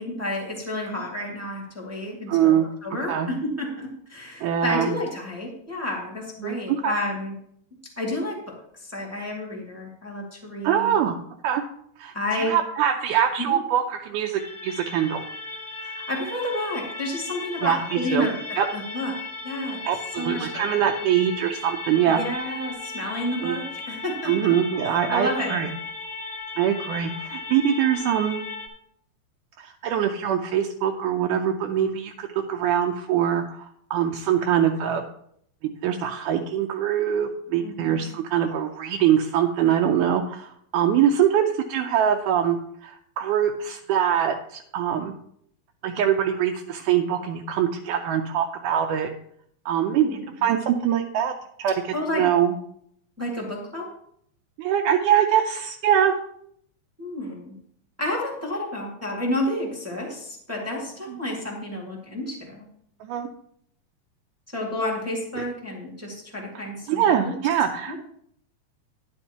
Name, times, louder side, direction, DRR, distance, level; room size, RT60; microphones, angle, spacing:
voice 1, 0.0-7.3 8.0-10.9 12.1-12.6 13.5-13.6 15.8-18.4 18.7-19.1 19.4-19.8 20.2-20.8 22.1-24.5 24.9-25.6 37.6-38.1 49.9-50.5 51.9-52.2 53.2-53.9 57.0-57.5 58.0-62.6 64.5-67.3 67.9-68.0, left 1 dB, 10° right, -2 dB, 0.9 m, -30 dB
voice 2, 2.3-2.7 3.1-3.3 4.4-4.9 6.4-7.0 10.6-11.2 11.4-11.6 12.0-15.2 17.6-17.8 18.1-18.3 18.6-18.7 19.9-22.2 23.4-23.6 24.3-25.7 26.6-28.4 29.6-35.0 35.8-42.6 42.8-45.1 45.8-49.1 49.7-51.3 51.6-51.7 52.1-52.6 54.6-56.2 61.1-61.2 63.0-63.3 66.9-68.0, right 9 dB, 80° right, 3 dB, 2.0 m, -23 dB
sound 1, 14.4-28.7, left 3 dB, 55° left, 1.9 m, -36 dB
10.5 x 9.8 x 2.9 m, 0.69 s
omnidirectional pair, 3.8 m